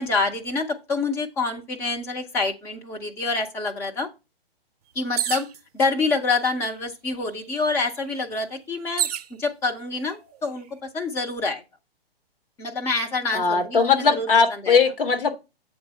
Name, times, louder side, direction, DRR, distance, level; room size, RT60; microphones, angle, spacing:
voice 1, 0.0-4.1 4.9-5.5 5.7-9.1 9.4-11.6 12.6-14.8, left 3 dB, 10° left, 0.5 m, -27 dB
sound 1, 5.2-5.6 6.5-6.6 6.9-9.3 10.1-10.6, right 10 dB, 40° right, 0.6 m, -30 dB
voice 2, 13.3-15.3, left 5 dB, 60° left, 1.9 m, -19 dB
7.8 x 3.8 x 5.5 m
figure-of-eight pair, 125°, 30 cm